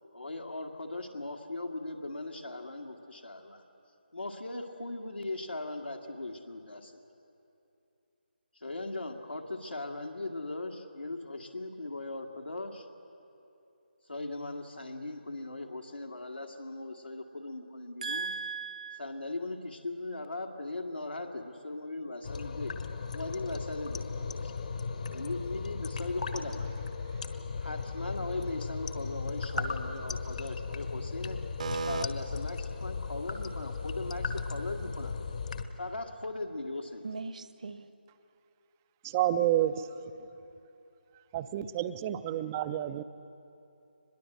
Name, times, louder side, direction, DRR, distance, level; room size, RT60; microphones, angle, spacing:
voice 1, 0.1-3.6 4.1-7.0 8.5-12.9 14.1-18.3 18.9-22.7 23.1-24.5 25.1-27.0 27.6-31.4 31.9-35.1 35.8-37.1, left 2 dB, 80° left, 2 dB, 2.0 m, -39 dB
voice 2, 18.0-19.0 31.6-32.0 37.0-37.9, right 4 dB, 45° right, 12 dB, 1.0 m, -36 dB
sound 1, 22.2-35.6, left 5 dB, 45° left, 1.2 m, -36 dB
voice 3, 39.0-39.9 41.3-43.0, right 12 dB, 15° right, 13 dB, 0.5 m, -29 dB
24.0 x 21.0 x 7.9 m, 2.8 s
figure-of-eight pair, 150°, 6 cm